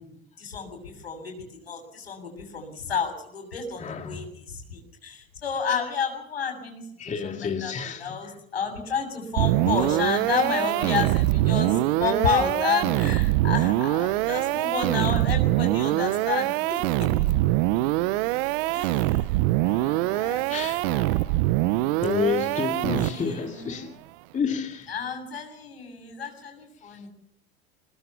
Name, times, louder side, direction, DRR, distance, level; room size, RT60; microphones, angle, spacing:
voice 1, 0.0-7.7 8.0-17.1 18.7-19.4 19.6-20.5 20.8-21.4 22.6-23.9 24.9-27.1, left 6 dB, 90° left, 7.3 m, -31 dB
voice 2, 3.8-4.3 7.0-8.2 20.5-20.8 22.0-24.0 24.3-24.9 26.8-27.0, left 6 dB, 25° left, 2.5 m, -30 dB
sound 1, 9.4-23.4, right 18 dB, 60° right, 0.9 m, -24 dB
23.0 x 20.0 x 7.1 m
hypercardioid pair, 90°, 30 cm